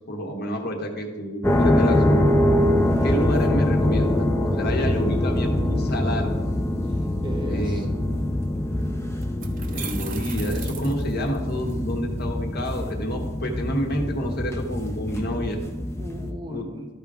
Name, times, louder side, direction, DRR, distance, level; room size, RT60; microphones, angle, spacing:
voice 1, 0.1-2.3 3.0-6.3 7.5-7.9 9.7-15.6 16.5-16.6, equal, 55° left, 2 dB, 1.2 m, -29 dB
sound 1, 1.4-16.3, left 1 dB, 15° left, 0.7 m, -24 dB
voice 2, 6.8-7.9 16.0-16.9, right 1 dB, 25° right, 3 dB, 1.0 m, -37 dB
sound 2, 8.5-8.6 9.2-11.7, right 7 dB, 45° right, 0.6 m, -38 dB
13.5 x 4.9 x 3.6 m, 1.3 s
head